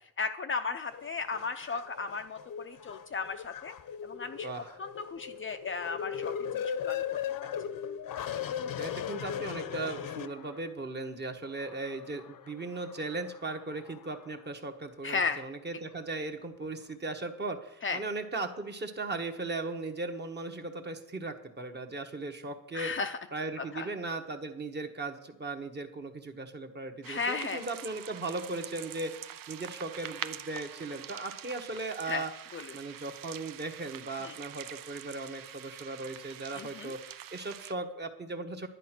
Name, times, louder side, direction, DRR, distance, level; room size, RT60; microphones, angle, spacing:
voice 1, 0.2-3.7 4.0-4.5 4.8-7.0 15.0-15.4 17.8-18.0 22.7-23.2 23.6-23.9 27.1-27.6 32.1-32.2 32.5-32.7 34.2-34.3 36.6-36.9, left 5 dB, 30° left, 7 dB, 0.6 m, -35 dB
sound 1, 0.9-10.8 11.4-14.5 15.1-15.2, left 8 dB, 60° left, 0.9 m, -39 dB
voice 2, 4.4-4.8 8.7-22.9 23.3-32.3 32.7-38.7, right 3 dB, 25° right, 5 dB, 1.3 m, -37 dB
sound 2, 27.0-37.7, right 10 dB, 60° right, 0.6 m, -45 dB
11.0 x 10.0 x 6.0 m, 0.83 s
cardioid pair, 140°, 38 cm